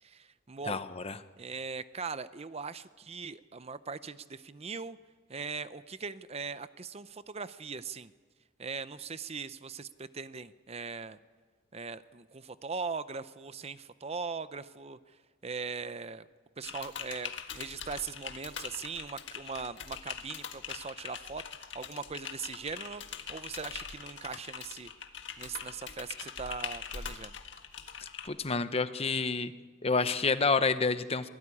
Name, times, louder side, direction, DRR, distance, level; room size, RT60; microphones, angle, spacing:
voice 1, 0.0-0.8 1.4-5.0 5.3-8.1 8.6-11.2 11.7-15.2 15.4-16.3 16.6-24.9 25.4-27.3, right 5 dB, 35° right, 14 dB, 0.7 m, -40 dB
voice 2, 0.7-1.2 28.2-29.5 29.8-31.3, left 4 dB, 30° left, 12 dB, 0.9 m, -29 dB
Typing, 16.6-28.3, left 7 dB, 65° left, 1.7 m, -42 dB
25.5 x 18.5 x 9.8 m, 1.4 s
head